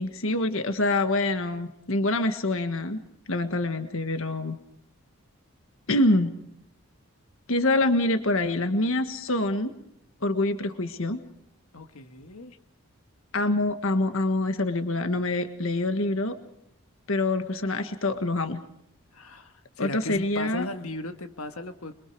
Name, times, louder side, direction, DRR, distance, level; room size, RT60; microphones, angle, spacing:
voice 1, 0.0-3.0 3.3-4.6 5.9-6.3 7.5-9.7 10.2-11.2 13.3-16.3 17.1-18.6 19.8-20.7, left 2 dB, 70° left, 8 dB, 1.6 m, -25 dB
voice 2, 11.7-12.6 19.1-21.9, left 2 dB, 90° left, 7 dB, 1.6 m, -37 dB
27.5 x 23.5 x 4.7 m, 0.75 s
head